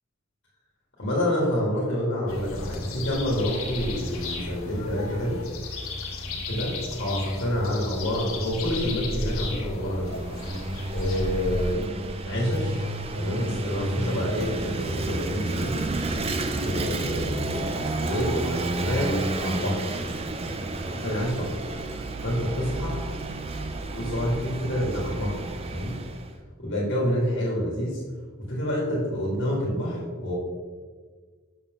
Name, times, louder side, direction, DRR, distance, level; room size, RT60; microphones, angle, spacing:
voice 1, 1.0-5.4 6.5-10.2 10.9-11.8 12.3-15.8 16.6-17.7 18.0-20.1 20.9-21.7 22.2-23.0 23.9-25.4 25.7-26.0 26.6-28.0 28.5-30.3, equal, 55° left, -4 dB, 1.8 m, -28 dB
sound 1, 2.3-11.8, left 2 dB, 75° left, 1.1 m, -34 dB
Vehicle / Engine, 9.7-26.4, right 2 dB, 30° right, 0.4 m, -31 dB
6.6 x 6.0 x 3.6 m, 1.5 s
head